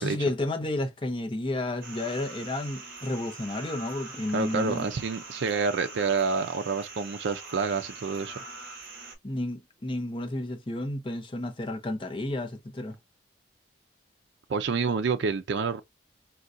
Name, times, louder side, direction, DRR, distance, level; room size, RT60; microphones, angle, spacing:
voice 1, 0.0-4.9 9.2-13.0, left 1 dB, 25° left, 0.7 m, -31 dB
sound 1, 1.8-9.2, right 3 dB, 50° right, 0.9 m, -43 dB
voice 2, 4.3-8.4 14.5-15.8, right 5 dB, 65° right, 0.4 m, -28 dB
3.8 x 2.2 x 2.4 m
head